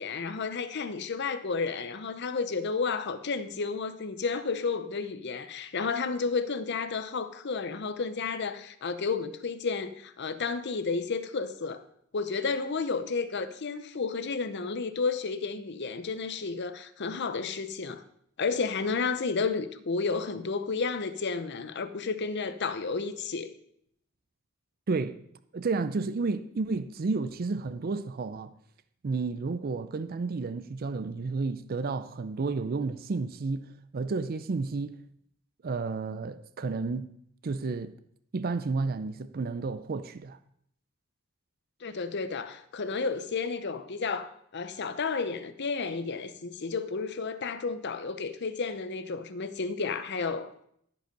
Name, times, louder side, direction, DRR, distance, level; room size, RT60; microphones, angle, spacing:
voice 1, 0.0-11.8 12.1-18.0 18.4-23.5 41.8-50.7, left 4 dB, 55° left, 0.7 m, -32 dB
voice 2, 24.9-25.2 25.5-28.5 29.0-33.7 33.9-35.0 35.6-37.1 37.4-38.0 38.3-40.4, right 4 dB, 45° right, 0.4 m, -31 dB
14.5 x 5.3 x 5.3 m
head